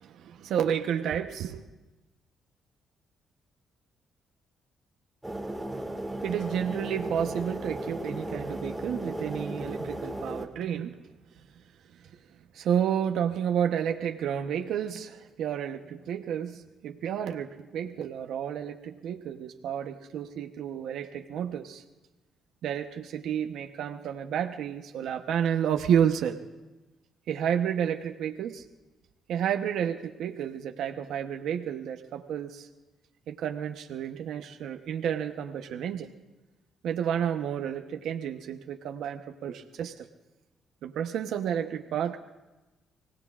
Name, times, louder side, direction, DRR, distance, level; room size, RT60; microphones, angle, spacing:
voice 1, 0.0-1.6 6.2-11.0 12.5-21.8 22.6-26.4 27.3-28.6 29.3-32.7 33.3-36.1 36.8-40.1 40.8-42.2, right 9 dB, 80° right, 5 dB, 0.9 m, -31 dB
sound 1, 5.2-10.5, right 1 dB, 5° right, 1.8 m, -35 dB
28.5 x 18.0 x 2.5 m, 1.1 s
cardioid pair, 90°, 0 cm